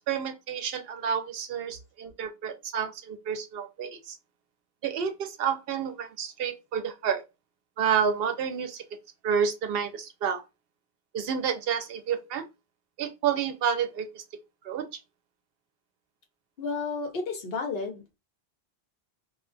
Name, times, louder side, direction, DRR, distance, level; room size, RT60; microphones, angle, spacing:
voice 1, 0.1-4.2 4.8-7.2 7.8-8.8 9.2-10.4 11.1-12.4 13.0-14.2 14.6-14.9, right 7 dB, 70° right, 0.7 m, -29 dB
voice 2, 16.6-18.0, left 4 dB, 75° left, 1.0 m, -32 dB
2.4 x 2.3 x 2.4 m
omnidirectional pair, 1.0 m